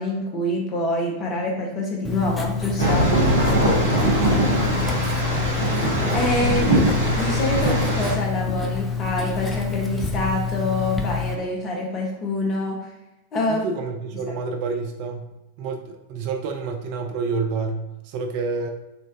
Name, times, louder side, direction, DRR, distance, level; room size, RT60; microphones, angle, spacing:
voice 1, 0.0-3.1 6.1-6.8 7.2-12.9 13.3-13.6, left 1 dB, 30° left, -1 dB, 0.9 m, -26 dB
Writing, 2.0-11.3, left 5 dB, 15° left, 0.5 m, -27 dB
sound 1, 2.8-8.1, right 1 dB, 75° right, 1.4 m, -21 dB
voice 2, 3.1-4.1 13.5-15.3 15.6-18.7, right 4 dB, 45° right, 3 dB, 0.4 m, -29 dB
3.9 x 2.5 x 2.5 m, 0.98 s
figure-of-eight pair, 90°, 0 cm